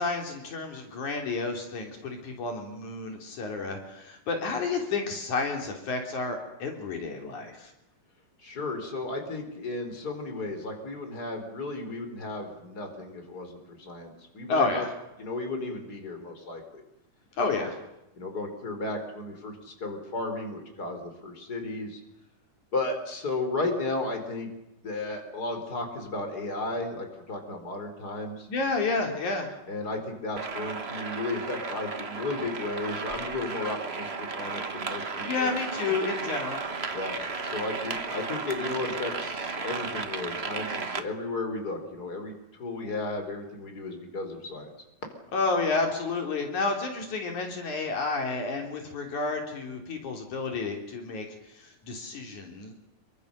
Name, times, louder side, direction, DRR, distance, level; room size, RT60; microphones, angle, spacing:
voice 1, 0.0-7.7 14.5-14.9 17.4-17.8 28.5-29.5 35.2-36.6 45.3-51.3 51.6-52.7, left 3 dB, 75° left, 3 dB, 4.6 m, -30 dB
voice 2, 8.4-14.8 15.2-16.8 17.6-17.7 18.1-22.0 22.7-24.5 24.8-28.5 29.7-35.5 35.9-36.0 36.9-37.1 37.4-42.3 42.6-44.7, left 2 dB, 30° left, 5 dB, 5.0 m, -34 dB
sound 1, 30.4-41.0, right 4 dB, 40° right, 0.9 m, -34 dB
26.5 x 24.5 x 6.7 m, 0.88 s
omnidirectional pair, 3.5 m